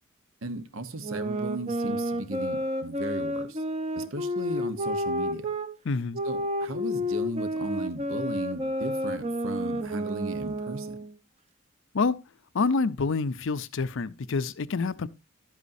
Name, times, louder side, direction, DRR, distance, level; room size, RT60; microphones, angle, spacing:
voice 1, 0.4-3.6 4.0-5.5 6.2-11.0, right 2 dB, 70° right, 1.0 m, -36 dB
sound 1, 1.0-5.7 6.1-11.1, equal, 30° right, 0.9 m, -30 dB
voice 2, 5.8-6.2 11.9-12.2 12.5-15.1, left 4 dB, 60° left, 0.6 m, -27 dB
12.0 x 8.2 x 2.6 m
head